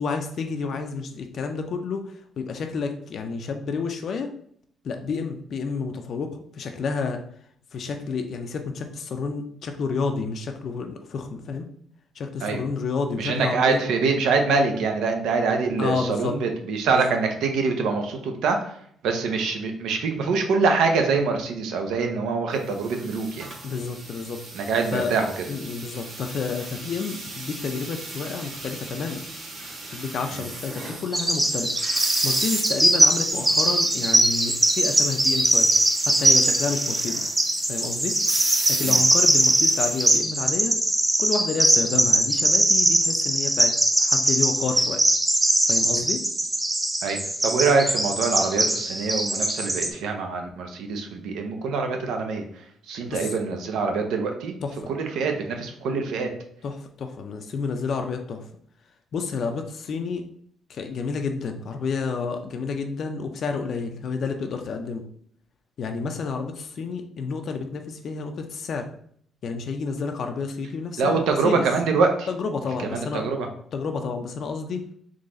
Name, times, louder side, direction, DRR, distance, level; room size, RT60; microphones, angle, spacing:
voice 1, 0.0-4.3 4.8-7.2 7.7-11.7 12.1-13.8 15.8-16.4 16.9-17.2 23.6-24.4 24.9-25.1 25.5-29.2 29.8-31.7 32.2-35.7 36.0-37.3 37.7-38.1 38.7-40.8 41.2-45.0 45.7-46.2 53.1-53.3 54.6-54.9 56.6-58.4 59.1-60.2 60.7-65.0 65.8-68.9 69.4-71.6 72.3-73.2 73.7-74.8, left 5 dB, 50° left, 5 dB, 0.4 m, -30 dB
voice 2, 13.2-18.8 19.0-23.5 24.5-25.4 30.3-30.4 38.8-39.0 47.0-52.4 52.9-54.5 54.9-56.3 71.0-72.3 72.8-73.5, right 4 dB, 80° right, 4 dB, 0.7 m, -24 dB
sound 1, 22.7-40.2, right 2 dB, 45° right, 1.2 m, -36 dB
Bird vocalization bird call bird song, 31.1-49.9, right 1 dB, 10° right, 0.5 m, -21 dB
3.9 x 3.2 x 3.7 m, 0.64 s
cardioid pair, 140°, 0 cm